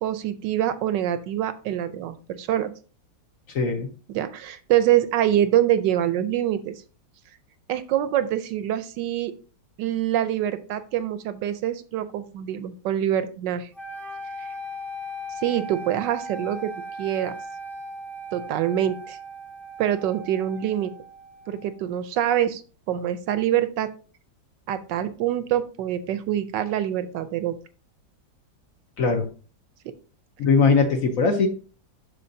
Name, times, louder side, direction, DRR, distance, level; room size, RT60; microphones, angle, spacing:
voice 1, 0.0-2.7 4.1-6.7 7.7-9.3 9.8-13.7 14.4-14.5 15.4-16.7 17.0-17.4 18.3-19.2 19.8-20.9 21.5-22.6 22.9-23.9 24.7-27.5 29.8-29.9, right 11 dB, 75° right, 12 dB, 1.2 m, -25 dB
voice 2, 3.5-3.9 29.0-29.3 30.4-31.5, left 4 dB, 55° left, 5 dB, 1.0 m, -20 dB
sound 1, 13.8-21.8, right 1 dB, 5° left, 0.4 m, -38 dB
7.7 x 6.2 x 2.7 m, 0.37 s
omnidirectional pair, 2.0 m